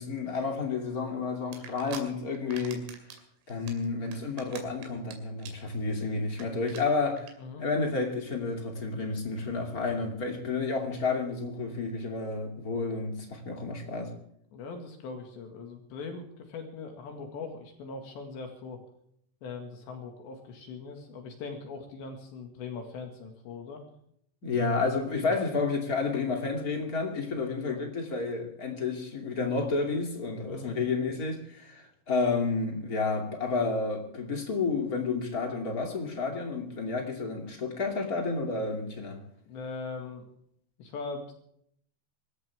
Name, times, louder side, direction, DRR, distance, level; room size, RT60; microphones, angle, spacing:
voice 1, 0.0-2.9 3.5-7.3 7.6-14.1 24.4-39.2, left 4 dB, 30° left, 1.9 m, -30 dB
sound 1, 1.5-2.0 2.4-3.2 3.5-5.1 5.4-5.7 6.0-6.1 6.3-6.4 6.7-6.8 7.2-7.3, right 7 dB, 90° right, 5.1 m, -44 dB
voice 2, 14.5-18.8 19.4-23.8 27.6-27.8 30.5-30.7 39.5-40.2 40.8-41.3, left 4 dB, 65° left, 4.0 m, -41 dB
25.0 x 14.0 x 3.5 m
omnidirectional pair, 5.7 m